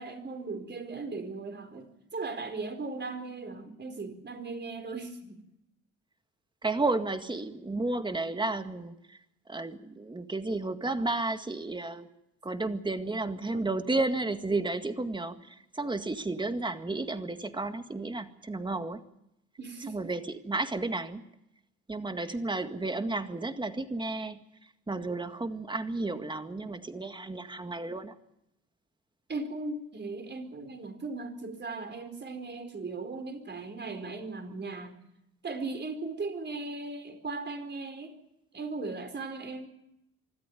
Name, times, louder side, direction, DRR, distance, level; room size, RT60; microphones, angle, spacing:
voice 1, 0.0-5.4 19.6-20.0 29.3-34.9 35.4-38.2 38.5-39.7, right 3 dB, 35° right, 7 dB, 4.5 m, -38 dB
voice 2, 6.6-9.2 9.5-12.1 12.4-19.0 19.9-21.2 21.9-24.4 24.9-28.1, right 2 dB, 15° right, 8 dB, 1.9 m, -32 dB
25.0 x 13.5 x 9.2 m, 0.83 s
cardioid pair, 90°, 30 cm